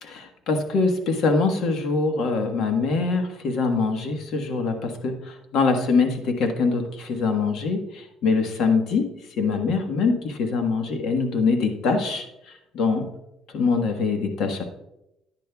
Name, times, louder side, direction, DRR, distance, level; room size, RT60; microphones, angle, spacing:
voice 1, 0.0-9.0 9.4-12.3 12.7-13.0 13.5-14.6, left 4 dB, 65° left, 5 dB, 1.4 m, -23 dB
10.5 x 10.5 x 2.3 m, 0.87 s
cardioid pair, 115°, 0 cm